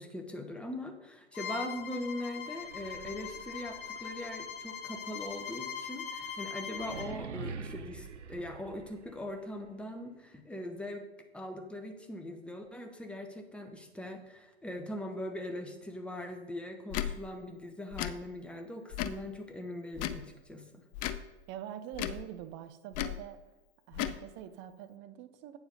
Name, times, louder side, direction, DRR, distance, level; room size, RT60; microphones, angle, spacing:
voice 1, 0.0-11.1 11.3-20.8, left 1 dB, 5° left, 5 dB, 1.0 m, -41 dB
Bowed string instrument, 1.3-7.1, left 7 dB, 50° left, 1.0 m, -41 dB
sound 1, 2.5-9.4, right 5 dB, 85° right, 0.8 m, -47 dB
Tick / Tick-tock, 16.9-17.1 17.9-18.1 18.9-19.2 19.9-20.2 20.9-21.2 21.9-22.2 22.9-23.2 23.9-24.2, left 11 dB, 25° left, 0.4 m, -34 dB
voice 2, 21.5-23.4 23.9-25.6, right 10 dB, 35° right, 10 dB, 0.8 m, -44 dB
8.9 x 7.1 x 4.0 m, 1.1 s
hypercardioid pair, 105°, 34 cm